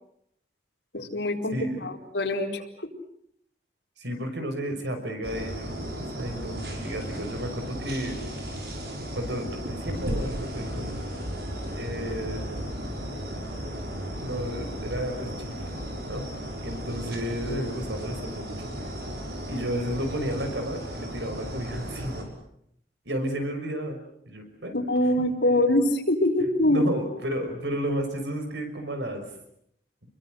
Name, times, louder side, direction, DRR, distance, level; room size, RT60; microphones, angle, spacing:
voice 1, 0.9-2.6 24.7-26.8, left 1 dB, 85° left, 1 dB, 4.5 m, -24 dB
voice 2, 1.5-1.9 4.0-8.2 9.1-10.9 11.7-12.7 14.2-15.5 16.1-16.3 16.6-18.9 19.5-22.3 23.0-24.0 24.3-24.8 26.6-29.3, equal, 90° right, 6 dB, 6.1 m, -32 dB
sound 1, 5.2-22.2, equal, 70° right, 6.4 m, -35 dB
30.0 x 22.5 x 7.9 m, 0.73 s
head